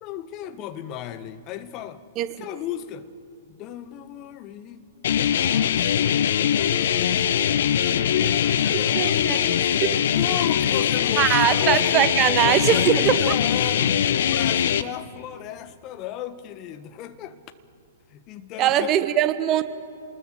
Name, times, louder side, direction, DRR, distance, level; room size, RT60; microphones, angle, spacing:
voice 1, 0.0-3.1 3.5-4.8 5.2-6.2 6.5-7.5 7.8-12.0 12.4-17.4 18.1-19.0, left 11 dB, 35° left, 1.4 m, -35 dB
sound 1, 5.0-14.8, left 9 dB, 55° left, 0.9 m, -22 dB
voice 2, 8.9-9.4 11.2-13.4 18.6-19.7, right 12 dB, 30° right, 1.3 m, -21 dB
29.5 x 20.5 x 7.8 m
figure-of-eight pair, 110°, 0 cm